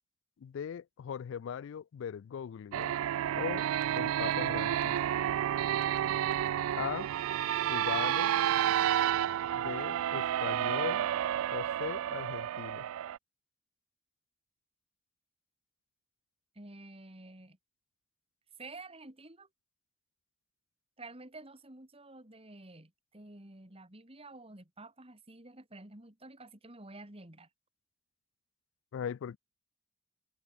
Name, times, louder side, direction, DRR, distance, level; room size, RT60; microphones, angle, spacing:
voice 1, 0.4-2.9 3.4-3.6 4.0-5.2 6.8-7.1 7.7-8.3 9.5-11.1 11.5-12.9 28.9-29.4, left 8 dB, 60° left, 0.3 m, -39 dB
sound 1, 2.7-13.2, right 11 dB, 80° right, 0.3 m, -30 dB
voice 2, 16.5-17.6 18.6-19.5 21.0-27.5, right 2 dB, 25° right, 2.6 m, -50 dB
open air
head